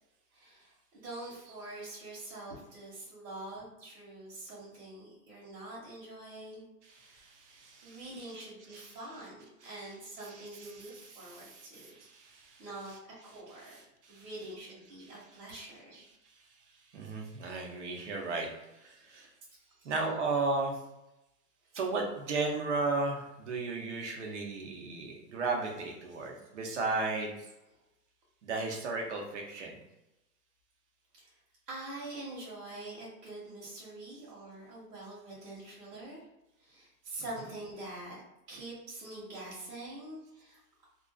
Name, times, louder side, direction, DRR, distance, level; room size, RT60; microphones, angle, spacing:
voice 1, 0.3-6.7 6.9-7.3 7.8-11.9 12.6-12.9 13.2-13.7 14.1-15.9 19.7-19.9 31.2-31.3 31.7-36.3 36.6-38.2 38.5-40.6, right 2 dB, 75° right, -7 dB, 1.1 m, -45 dB
voice 2, 6.8-9.3 9.6-14.5 15.0-15.6 15.9-16.1 16.9-18.5 18.7-19.3 19.8-20.8 21.7-27.3 28.4-29.7 37.4-37.5, right 3 dB, 50° right, 0 dB, 0.5 m, -36 dB
2.5 x 2.2 x 2.2 m, 0.93 s
hypercardioid pair, 175°, 48 cm